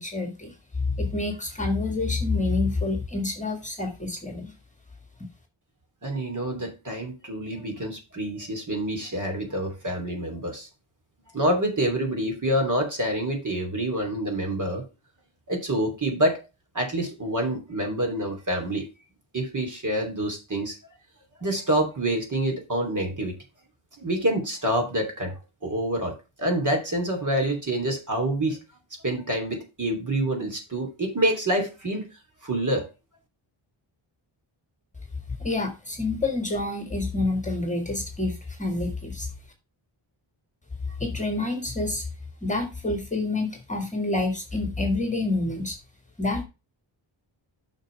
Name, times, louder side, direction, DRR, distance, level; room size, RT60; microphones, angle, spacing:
voice 1, 0.0-4.5 35.4-39.3 40.8-42.1 42.4-45.8 46.2-46.4, left 2 dB, 15° left, 4 dB, 1.9 m, -28 dB
voice 2, 6.0-10.7 11.3-14.8 15.5-16.4 16.7-18.9 19.3-20.8 21.4-23.4 24.0-25.3 25.6-28.6 29.0-32.1 32.4-32.9, right 1 dB, 40° right, 2 dB, 3.0 m, -27 dB
8.9 x 6.2 x 3.3 m, 0.28 s
wide cardioid pair, 135°, 49 cm